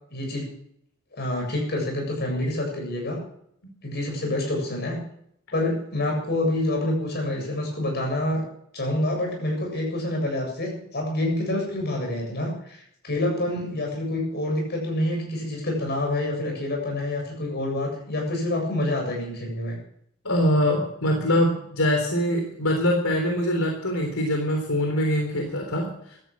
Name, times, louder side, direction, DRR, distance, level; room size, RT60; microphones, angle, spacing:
voice 1, 0.1-0.5 1.1-3.2 3.8-5.0 5.5-8.5 8.7-19.8, left 1 dB, 50° left, 1 dB, 7.7 m, -27 dB
voice 2, 20.2-26.2, equal, 80° left, 2 dB, 3.8 m, -23 dB
16.5 x 13.5 x 6.3 m, 0.70 s
head